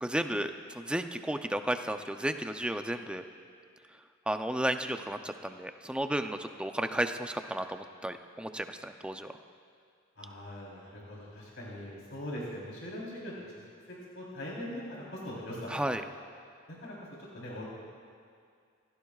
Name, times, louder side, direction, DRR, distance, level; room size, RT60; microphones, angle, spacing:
voice 1, 0.0-3.2 4.3-9.3 15.7-16.0, right 1 dB, 5° right, 7 dB, 0.5 m, -33 dB
voice 2, 10.2-13.3 13.9-15.9 16.7-17.6, left 1 dB, 70° left, -5 dB, 3.7 m, -41 dB
27.0 x 16.5 x 2.4 m, 2.2 s
head